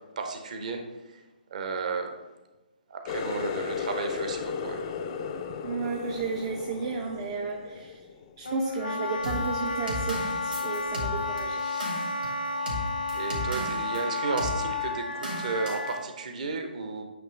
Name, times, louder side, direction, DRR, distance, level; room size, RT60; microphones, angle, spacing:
voice 1, 0.2-0.8 1.5-2.1 2.9-4.8 13.1-17.0, right 4 dB, 45° right, 5 dB, 0.9 m, -33 dB
Water tap faucet, 3.1-8.5 8.9-9.4 9.9-10.1 10.9-11.0, left 6 dB, 30° left, 0.4 m, -35 dB
voice 2, 5.6-8.0 8.4-11.7, right 4 dB, 30° right, 2 dB, 0.5 m, -33 dB
Wind instrument woodwind instrument, 8.4-16.0, left 3 dB, 70° left, 1.1 m, -32 dB
sound 1, 9.2-14.0 14.4-14.6 15.2-15.9, equal, 65° right, 2.0 m, -35 dB
8.6 x 3.1 x 4.9 m, 1.1 s
figure-of-eight pair, 135°, 5 cm